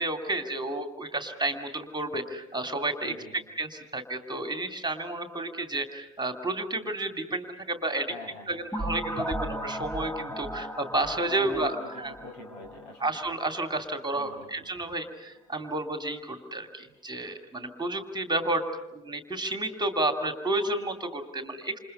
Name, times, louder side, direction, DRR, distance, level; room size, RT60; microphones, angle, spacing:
voice 1, 0.0-3.1 3.6-8.1 8.5-12.1 13.0-18.6 18.9-21.8, right 2 dB, 10° right, 6 dB, 2.6 m, -31 dB
voice 2, 8.1-8.6 11.3-11.9 12.2-13.1 14.1-14.7, left 2 dB, 70° left, 4 dB, 6.4 m, -43 dB
sound 1, 8.7-13.4, equal, 5° left, 1.5 m, -36 dB
28.5 x 28.0 x 5.6 m, 0.94 s
figure-of-eight pair, 65°, 36 cm